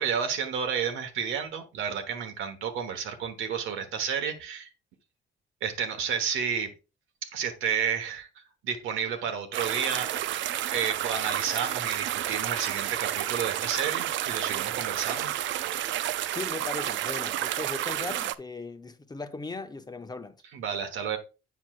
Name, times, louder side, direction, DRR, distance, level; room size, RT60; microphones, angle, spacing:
voice 1, 0.0-4.7 5.6-6.7 7.2-10.4 10.7-15.4 20.5-21.2, right 7 dB, 90° right, 1.2 m, -31 dB
sound 1, 9.5-18.3, right 12 dB, 70° right, 0.4 m, -30 dB
voice 2, 16.3-20.3, left 3 dB, 20° left, 0.7 m, -38 dB
8.1 x 6.0 x 2.4 m
cardioid pair, 90°, 20 cm